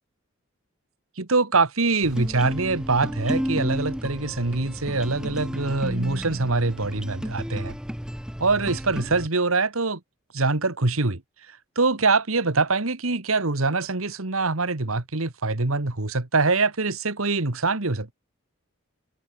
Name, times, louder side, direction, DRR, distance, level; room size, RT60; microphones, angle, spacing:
voice 1, 1.2-7.8 8.4-10.0 10.3-11.2 11.8-18.1, right 3 dB, 75° right, 1.9 m, -24 dB
sound 1, 2.0-9.3, equal, 5° right, 2.3 m, -32 dB
head